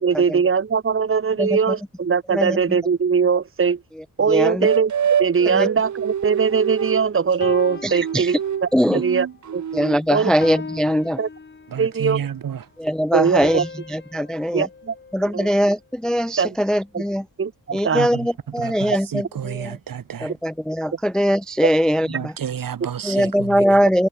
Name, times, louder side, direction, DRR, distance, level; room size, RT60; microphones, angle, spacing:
voice 1, 0.0-3.8 4.2-4.9 5.2-8.4 8.6-9.3 9.5-9.6 10.1-10.3 11.2-11.3 11.8-12.2 13.1-13.6 14.5-15.5 16.4-16.6 16.9-17.0 17.4-18.1 21.6-21.7, right 6 dB, 35° right, 2.2 m, -21 dB
voice 2, 1.4-1.7 2.3-2.6 4.3-4.7 5.5-5.7 7.8-8.3 8.7-9.0 9.7-11.2 12.8-14.7 15.1-17.3 17.7-19.8 20.2-22.3 23.0-24.1, equal, ahead, 0.4 m, -21 dB
sound 1, 4.6-7.1 7.6-10.3, right 8 dB, 55° right, 1.4 m, -25 dB
sound 2, 7.4-9.0 9.4-9.7 10.4-12.1 13.4-15.8, left 4 dB, 30° left, 3.5 m, -38 dB
voice 3, 11.7-12.7 17.9-20.4 22.1-23.8, right 8 dB, 70° right, 6.9 m, -31 dB
wide cardioid pair, 150°, 34 cm